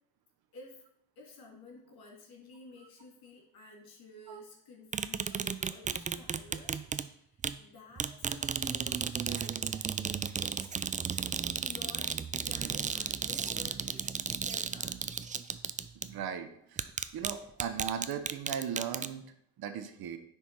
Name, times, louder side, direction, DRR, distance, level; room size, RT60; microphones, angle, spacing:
voice 1, 0.5-0.8 1.2-10.7 11.6-15.0, left 2 dB, 70° left, 0 dB, 2.6 m, -53 dB
sound 1, 4.9-7.1 7.4-7.6 8.0-16.1 16.8-17.3 17.6-19.1, right 6 dB, 20° right, 0.3 m, -34 dB
voice 2, 16.0-16.9 17.1-20.2, right 8 dB, 70° right, 9 dB, 1.0 m, -38 dB
9.8 x 3.6 x 4.5 m, 0.71 s
cardioid pair, 85°, 39 cm